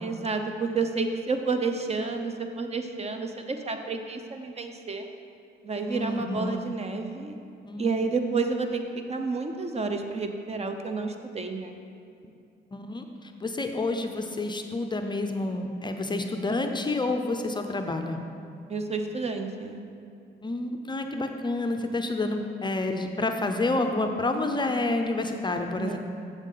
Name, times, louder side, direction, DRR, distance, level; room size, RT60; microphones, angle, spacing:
voice 1, 0.0-5.1 5.6-7.4 7.8-11.8 18.7-19.8 25.8-26.0, right 4 dB, 30° right, 6 dB, 0.6 m, -30 dB
voice 2, 5.9-6.6 7.6-7.9 12.7-18.2 20.4-26.0, left 2 dB, 20° left, 5 dB, 0.5 m, -29 dB
7.2 x 7.2 x 3.8 m, 2.5 s
cardioid pair, 90°, 20 cm